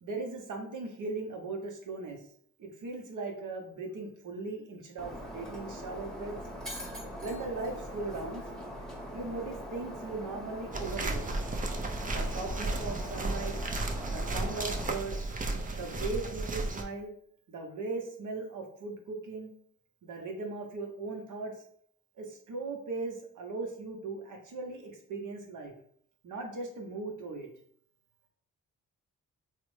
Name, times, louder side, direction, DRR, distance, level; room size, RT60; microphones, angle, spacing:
voice 1, 0.0-2.2 2.6-6.4 7.2-8.5 9.1-11.2 12.1-13.6 14.1-15.2 15.7-17.1 17.5-19.5 20.0-21.5 22.2-25.7 26.2-27.5, right 3 dB, 60° right, 2 dB, 0.8 m, -38 dB
Shatter, 5.0-14.9, equal, ahead, 1.0 m, -42 dB
sound 1, 10.7-16.8, right 2 dB, 25° right, 0.5 m, -34 dB
3.2 x 2.0 x 3.1 m, 0.64 s
supercardioid pair, 55°, 35 cm